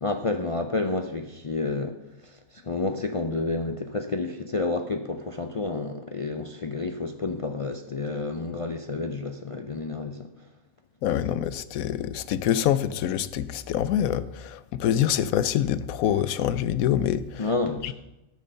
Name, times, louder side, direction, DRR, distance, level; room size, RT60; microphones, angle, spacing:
voice 1, 0.0-2.0 2.2-10.3 17.4-17.9, left 3 dB, 60° left, 0.3 m, -30 dB
voice 2, 11.0-17.5 17.8-17.9, left 10 dB, 85° left, 1.0 m, -25 dB
12.5 x 6.4 x 6.7 m
omnidirectional pair, 1.4 m